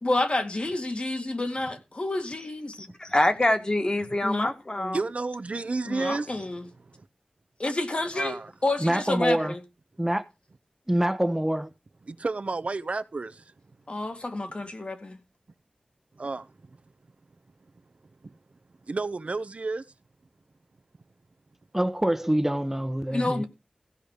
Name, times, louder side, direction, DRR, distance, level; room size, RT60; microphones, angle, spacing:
voice 1, 0.0-2.9 4.2-4.5 4.8-5.0 5.9-6.7 7.6-9.6 13.9-15.2 23.1-23.4, left 2 dB, 50° left, 2.1 m, -29 dB
voice 2, 2.8-5.0, left 1 dB, 35° left, 1.9 m, -25 dB
voice 3, 4.9-6.3 8.1-8.5 12.1-13.4 16.2-16.5 18.9-19.8, right 3 dB, 65° right, 0.9 m, -31 dB
voice 4, 8.8-9.5 10.0-10.2 10.9-11.7 21.7-23.4, right 1 dB, 15° right, 1.0 m, -25 dB
15.5 x 5.2 x 6.5 m
wide cardioid pair, 50°, 2 cm